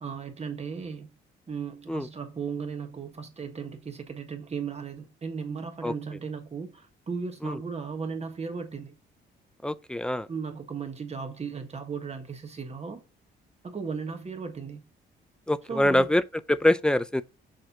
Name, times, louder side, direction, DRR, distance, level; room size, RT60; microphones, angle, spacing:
voice 1, 0.0-1.1 1.5-9.0 10.3-13.0 13.6-14.9 15.7-16.1, right 5 dB, 35° right, 1.5 m, -36 dB
voice 2, 9.6-10.3 15.5-16.2 16.5-17.2, left 1 dB, 5° left, 0.5 m, -24 dB
6.6 x 4.2 x 3.8 m
cardioid pair, 90°, 20 cm